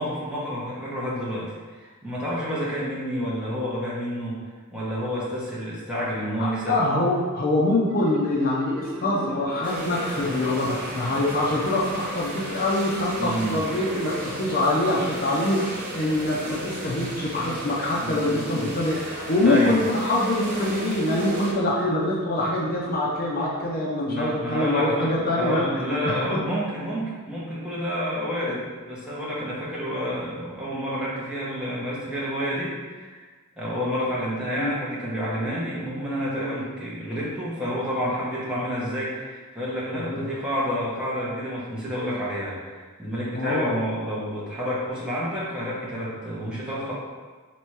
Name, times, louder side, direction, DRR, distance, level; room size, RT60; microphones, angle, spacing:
voice 1, 0.0-4.4 4.7-6.8 13.2-13.6 17.3-17.6 18.0-18.7 19.4-19.7 24.1-33.2 33.6-46.9, equal, 5° right, -8 dB, 1.0 m, -29 dB
voice 2, 6.4-25.6 26.0-26.4 34.6-34.7 40.1-40.3 43.3-43.8, left 1 dB, 40° left, -4 dB, 0.6 m, -24 dB
Marimba xylophone, 7.9-10.6, left 1 dB, 55° right, 1.3 m, -38 dB
sound 1, 9.6-21.5, equal, 40° right, 0.9 m, -35 dB
3.4 x 2.9 x 4.6 m, 1.4 s
head